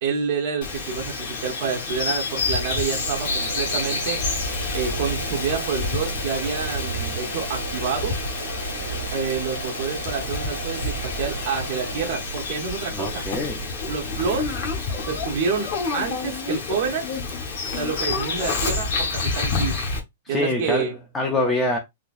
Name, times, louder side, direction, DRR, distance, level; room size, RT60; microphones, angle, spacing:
voice 1, 0.0-4.2 4.7-8.2 9.1-13.2 13.9-14.6 15.1-17.1 17.8-19.9 20.3-21.0, right 6 dB, 40° right, 0.7 m, -28 dB
Bird vocalization bird call bird song, 0.6-20.0, left 4 dB, 40° left, 0.9 m, -29 dB
sound 1, 2.9-14.7, right 5 dB, 70° right, 1.3 m, -34 dB
voice 2, 12.9-13.7 20.2-21.8, left 2 dB, 10° left, 0.4 m, -25 dB
3.8 x 2.8 x 2.4 m
supercardioid pair, 180°, 0 cm